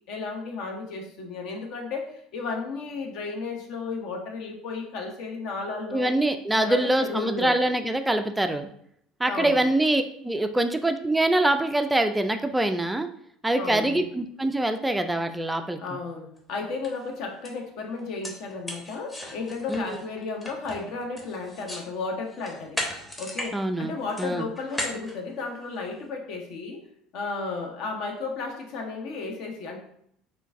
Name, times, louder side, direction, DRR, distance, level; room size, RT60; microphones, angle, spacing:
voice 1, 0.1-6.1 6.6-7.6 9.3-9.7 13.6-14.1 15.8-22.8 23.2-26.8 27.1-29.8, left 4 dB, 55° left, 2 dB, 0.7 m, -33 dB
voice 2, 5.9-8.7 9.2-13.1 13.4-15.8 19.7-20.0 23.5-24.4, right 1 dB, 10° right, 7 dB, 0.3 m, -24 dB
sound 1, 16.4-16.5 16.8-17.0 17.5-17.6 18.0-21.9 22.3-23.5 23.8-25.9, left 1 dB, 15° left, 0.8 m, -36 dB
3.8 x 2.5 x 3.4 m, 0.70 s
figure-of-eight pair, 65°, 0 cm